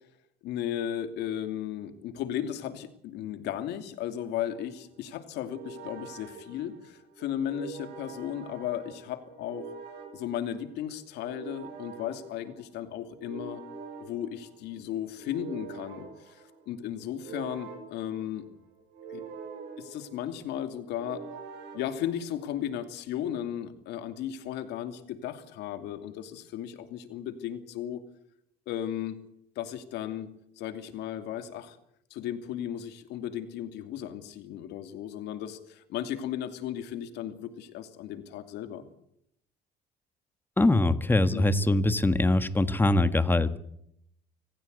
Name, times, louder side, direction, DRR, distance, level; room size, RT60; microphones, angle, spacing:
voice 1, 0.4-9.7 10.1-13.6 14.0-18.4 19.1-19.2 19.8-21.2 21.7-28.0 28.7-29.2 29.6-30.3 30.6-31.8 32.1-38.8 41.3-41.4, left 10 dB, 85° left, 9 dB, 2.7 m, -35 dB
sound 1, 4.3-22.7, right 5 dB, 90° right, 5.8 m, -46 dB
voice 2, 40.6-43.6, left 2 dB, 10° left, 12 dB, 1.6 m, -23 dB
26.0 x 15.0 x 8.3 m, 0.75 s
cardioid pair, 110°, 17 cm